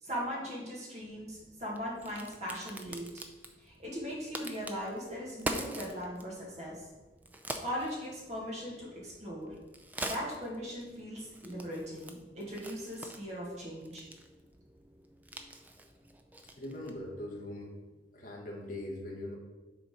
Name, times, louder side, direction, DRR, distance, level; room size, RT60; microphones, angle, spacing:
voice 1, 0.0-3.1 3.6-6.8 7.6-9.5 10.0-14.1, equal, 40° right, -5 dB, 2.1 m, -39 dB
Crack, 1.0-17.1, right 1 dB, 10° right, 0.4 m, -45 dB
voice 2, 16.6-17.7 18.1-19.4, left 1 dB, 50° left, -1 dB, 1.3 m, -41 dB
7.0 x 4.1 x 5.1 m, 1.2 s
head